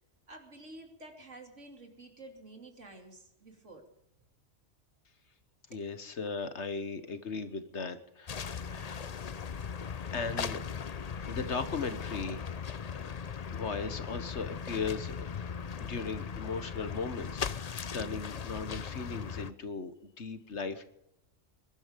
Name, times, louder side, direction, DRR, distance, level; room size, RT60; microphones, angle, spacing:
voice 1, 0.3-3.9 5.7-5.8, right 2 dB, 70° right, 3 dB, 3.2 m, -50 dB
voice 2, 5.7-9.0 10.1-10.6 11.3-12.5 12.9-13.1 13.5-15.3 15.8-20.8, left 4 dB, 65° left, 10 dB, 1.6 m, -37 dB
sound 1, 8.3-19.5, left 6 dB, 40° left, 0.6 m, -38 dB
21.5 x 12.0 x 5.2 m, 0.80 s
omnidirectional pair, 1.3 m